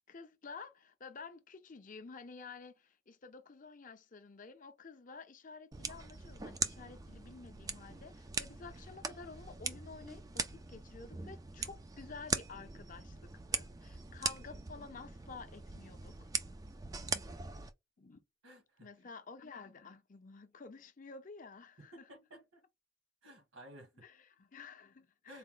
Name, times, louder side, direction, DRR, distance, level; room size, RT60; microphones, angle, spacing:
voice 1, 0.1-16.3 18.0-18.2 18.8-22.1 24.0-25.4, left 4 dB, 40° left, 0.5 m, -51 dB
sound 1, 5.7-17.7, right 4 dB, 15° right, 0.3 m, -41 dB
voice 2, 18.4-18.9 21.8-22.6 23.2-23.9 25.3-25.4, equal, 75° right, 1.8 m, -54 dB
4.1 x 2.1 x 3.7 m
head